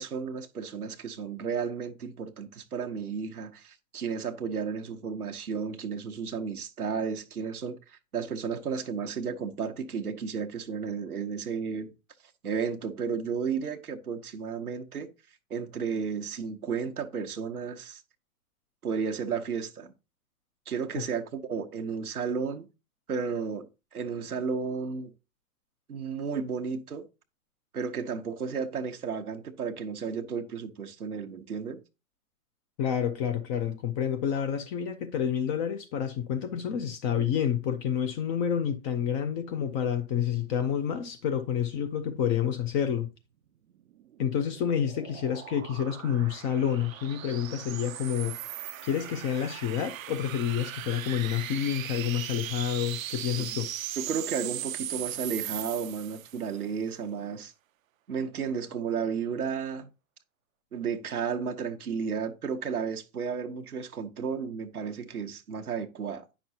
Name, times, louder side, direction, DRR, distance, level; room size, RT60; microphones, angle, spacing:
voice 1, 0.0-11.9 12.4-15.1 15.5-18.0 18.8-19.9 20.7-22.7 23.1-25.1 25.9-27.1 27.7-31.8 53.3-53.5 54.0-57.5 58.1-59.9 60.7-66.2, right 6 dB, 90° right, 0.9 m, -33 dB
voice 2, 32.8-43.1 44.2-48.4 48.8-53.7, left 8 dB, 20° left, 0.5 m, -29 dB
sound 1, 43.9-56.5, right 12 dB, 65° right, 0.6 m, -39 dB
9.1 x 6.0 x 2.7 m
hypercardioid pair, 115°, 43 cm